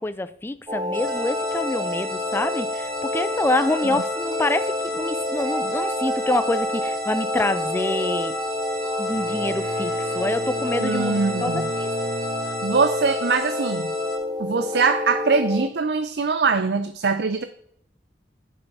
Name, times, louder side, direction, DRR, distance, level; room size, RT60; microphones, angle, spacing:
voice 1, 0.0-8.4 9.0-11.9, left 2 dB, 15° left, 13 dB, 0.3 m, -26 dB
sound 1, 0.7-15.7, left 1 dB, 25° right, 0.6 m, -29 dB
sound 2, 0.9-14.2, left 2 dB, 50° right, 3.2 m, -32 dB
Bowed string instrument, 9.0-13.1, right 2 dB, 85° right, 1.2 m, -36 dB
voice 2, 10.8-11.7 12.6-13.9 14.4-17.4, right 4 dB, 70° right, 10 dB, 0.5 m, -22 dB
11.0 x 5.5 x 4.1 m, 0.69 s
head